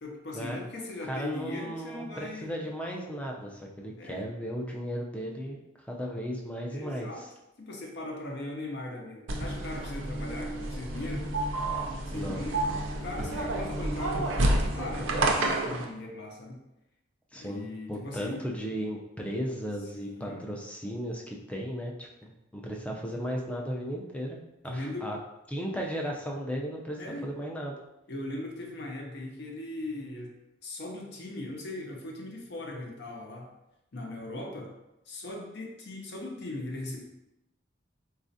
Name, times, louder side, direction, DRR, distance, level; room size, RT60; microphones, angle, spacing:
voice 1, 0.0-2.5 4.0-4.3 6.7-7.3 7.6-11.3 12.1-12.6 12.9-16.6 17.4-18.8 19.9-20.5 24.7-25.1 27.0-27.3 28.1-30.3 30.6-33.5 33.9-34.7 35.1-37.0, left 2 dB, 60° left, 0 dB, 0.7 m, -39 dB
voice 2, 1.1-5.6 5.9-7.1 12.1-12.4 17.3-24.4 24.6-25.2 25.5-27.8, equal, 5° left, -1 dB, 0.4 m, -35 dB
sound 1, 9.3-15.8, right 1 dB, 90° right, 0.5 m, -30 dB
4.1 x 2.4 x 2.6 m, 0.90 s
head